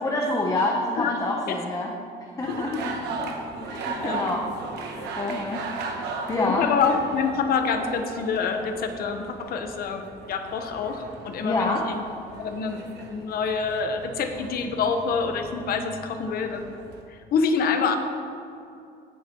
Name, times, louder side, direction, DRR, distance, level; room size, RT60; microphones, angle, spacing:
voice 1, 0.0-1.9 2.4-3.2 3.6-6.7 11.4-11.8, left 2 dB, 20° left, 0 dB, 0.8 m, -28 dB
sound 1, 2.4-17.0, right 4 dB, 80° right, 1.1 m, -37 dB
voice 2, 6.3-10.0 10.3-12.0 12.4-12.8 13.1-16.7 17.1-18.0, left 5 dB, 65° left, 6 dB, 1.0 m, -26 dB
16.5 x 7.0 x 3.0 m, 2.6 s
cardioid pair, 110°, 17 cm